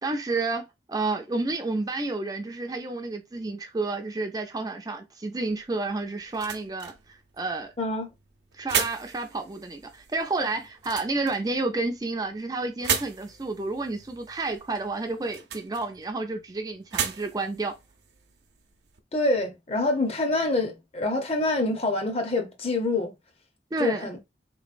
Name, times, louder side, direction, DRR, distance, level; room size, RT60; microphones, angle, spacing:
voice 1, 0.0-7.7 8.5-17.7 23.7-24.1, right 3 dB, 20° right, 0.4 m, -30 dB
sound 1, 5.5-19.0, right 7 dB, 70° right, 0.6 m, -36 dB
voice 2, 7.8-8.1 19.1-23.1 23.8-24.2, left 2 dB, 35° left, 0.7 m, -26 dB
3.9 x 3.0 x 2.5 m
head